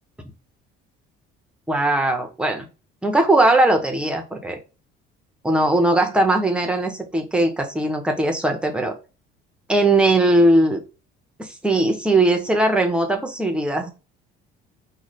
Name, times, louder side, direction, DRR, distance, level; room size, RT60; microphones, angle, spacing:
voice 1, 1.7-2.7 3.0-4.6 5.4-8.9 9.7-10.8 11.4-13.9, right 2 dB, 5° right, 4 dB, 0.7 m, -19 dB
3.2 x 2.2 x 3.9 m, 0.32 s
cardioid pair, 145°, 21 cm